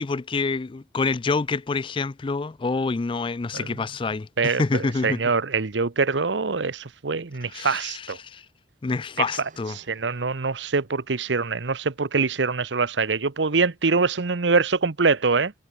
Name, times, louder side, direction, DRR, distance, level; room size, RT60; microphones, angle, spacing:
voice 1, 0.0-5.2 7.5-8.4 8.8-9.8, left 4 dB, 30° left, 0.4 m, -27 dB
voice 2, 4.4-8.2 9.8-15.5, right 4 dB, 85° right, 1.0 m, -24 dB
sound 1, 9.3-11.2, right 4 dB, 45° right, 7.3 m, -55 dB
head